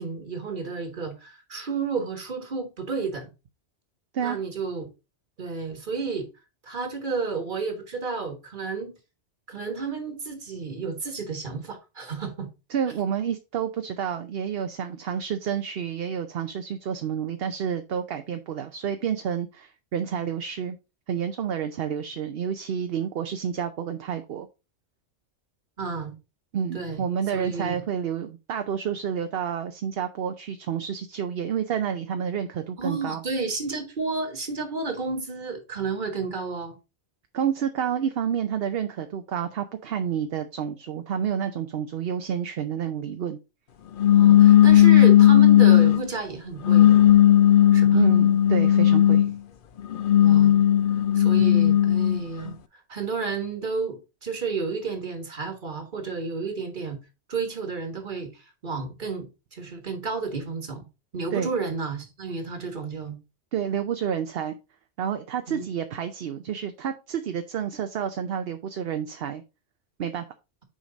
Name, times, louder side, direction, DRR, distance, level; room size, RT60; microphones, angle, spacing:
voice 1, 0.0-3.3 4.2-4.9 5.4-6.3 6.6-8.9 9.5-12.5 25.8-26.1 26.7-27.8 32.8-36.8 44.1-47.1 47.7-48.0 50.2-50.6 51.1-57.0 57.3-60.9 61.1-63.2 65.5-65.6, right 4 dB, 45° right, 1.6 m, -31 dB
voice 2, 12.7-20.8 21.1-24.5 26.5-33.2 37.3-43.4 47.9-49.3 61.3-61.5 63.5-64.6 65.0-69.4 70.0-70.2, right 8 dB, 60° right, 0.8 m, -29 dB
sound 1, 44.0-46.0 46.6-49.3 49.9-52.2, left 11 dB, 55° left, 0.7 m, -16 dB
6.4 x 4.8 x 3.9 m
omnidirectional pair, 1.2 m